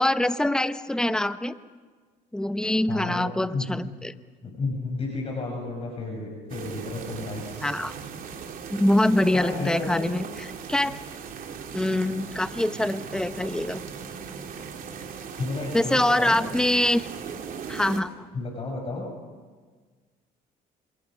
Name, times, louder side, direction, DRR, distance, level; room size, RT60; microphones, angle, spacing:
voice 1, 0.0-1.6 2.3-4.1 7.6-7.9 8.7-11.0 11.7-13.8 15.7-17.1 17.7-18.3, left 1 dB, 5° left, 11 dB, 0.9 m, -24 dB
voice 2, 2.9-3.3 3.5-3.9 4.4-7.7 9.3-10.1 15.4-16.4 18.3-19.1, left 3 dB, 35° left, 0 dB, 6.2 m, -32 dB
sound 1, 6.5-18.0, right 6 dB, 55° right, 3.4 m, -38 dB
27.0 x 27.0 x 6.3 m, 1.5 s
cardioid pair, 110°, 17 cm